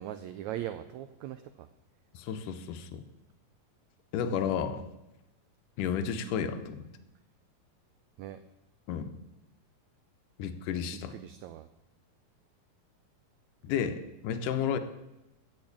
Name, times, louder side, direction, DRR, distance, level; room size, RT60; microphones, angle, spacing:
voice 1, 0.0-1.4 8.2-8.4 11.1-11.7, right 12 dB, 85° right, 11 dB, 1.6 m, -39 dB
voice 2, 2.1-3.0 4.1-4.8 5.8-6.8 8.9-9.1 10.4-11.1 13.6-14.8, left 7 dB, 75° left, 9 dB, 2.3 m, -32 dB
15.0 x 6.4 x 8.5 m, 0.96 s
omnidirectional pair, 3.9 m